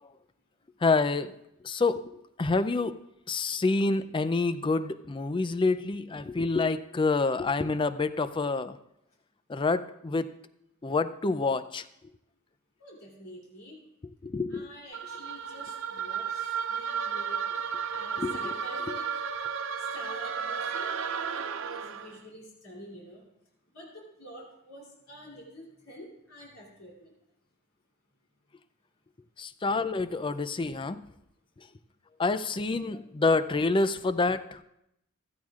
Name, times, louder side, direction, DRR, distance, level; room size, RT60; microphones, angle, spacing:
voice 1, 0.8-1.3 1.6-2.0 2.4-2.9 3.3-8.8 9.5-10.3 10.8-11.8 14.2-14.7 18.2-18.5 29.4-31.0 32.2-34.6, left 3 dB, 25° left, 13 dB, 0.4 m, -27 dB
voice 2, 12.8-13.8 14.5-17.4 17.9-19.1 19.9-20.9 21.3-23.2 23.7-27.1, equal, 75° left, -3 dB, 3.1 m, -47 dB
sound 1, 14.9-22.2, right 6 dB, 65° right, 0.6 m, -33 dB
15.5 x 13.5 x 2.4 m, 0.80 s
head